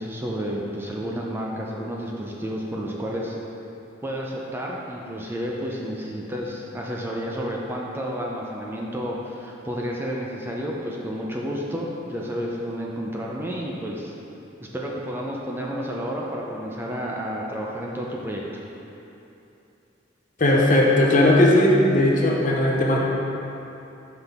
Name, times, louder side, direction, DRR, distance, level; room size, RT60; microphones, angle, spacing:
voice 1, 0.0-3.4 4.0-14.1 14.6-18.6, equal, 10° right, -3 dB, 0.4 m, -31 dB
voice 2, 20.4-23.0, left 1 dB, 40° left, -2 dB, 0.7 m, -17 dB
5.7 x 5.7 x 3.5 m, 2.9 s
head